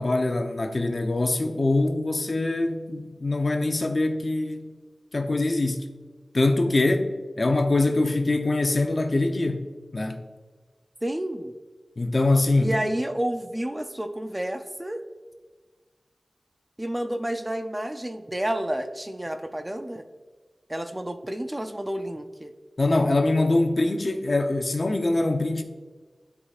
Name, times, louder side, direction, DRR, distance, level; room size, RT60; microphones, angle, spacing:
voice 1, 0.0-4.7 5.1-5.9 6.3-7.1 7.4-9.7 9.9-10.2 12.0-12.7 22.8-25.6, left 2 dB, 50° left, 0.7 m, -23 dB
voice 2, 11.0-11.5 12.6-15.0 16.8-20.0 20.7-22.5, right 1 dB, 15° right, 0.5 m, -30 dB
13.0 x 4.8 x 2.4 m
wide cardioid pair, 75°, 0 cm